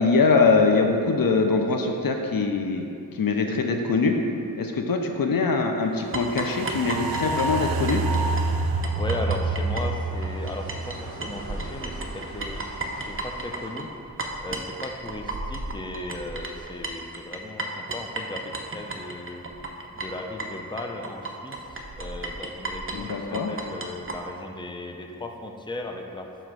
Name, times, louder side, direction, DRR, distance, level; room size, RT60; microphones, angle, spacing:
voice 1, 0.0-4.2 4.6-8.0 22.9-23.5, left 4 dB, 70° left, 3 dB, 0.7 m, -23 dB
sound 1, 6.1-11.0 11.2-24.2, right 3 dB, 35° right, 0.8 m, -34 dB
sound 2, 6.1-12.5 12.9-13.0, right 3 dB, 80° right, 0.5 m, -28 dB
sound 3, 8.5-13.7, right 1 dB, 55° right, 1.4 m, -44 dB
voice 2, 9.0-13.9 14.4-19.4 19.9-26.3, left 2 dB, 15° left, 2 dB, 0.6 m, -36 dB
8.9 x 3.1 x 6.1 m, 2.5 s
wide cardioid pair, 70°, 36 cm